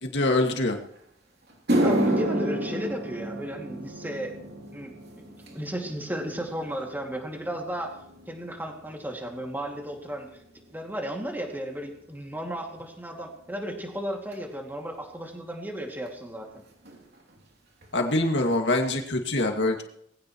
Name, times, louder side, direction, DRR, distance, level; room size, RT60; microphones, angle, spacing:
voice 1, 0.0-0.8 17.9-19.8, left 2 dB, 75° left, 2 dB, 2.4 m, -24 dB
sound 1, 1.0-1.1 1.5-10.0 10.3-10.7 11.5-11.6 14.3-14.4 16.1-16.2 16.3-16.6 16.8-17.4 17.8-17.9 18.4-18.5, right 1 dB, 60° right, 3.2 m, -31 dB
voice 2, 1.8-4.4 4.7-4.9 5.4-8.0 8.3-10.3 10.7-16.6, equal, 10° right, 1 dB, 2.6 m, -34 dB
21.0 x 16.5 x 3.2 m, 0.75 s
head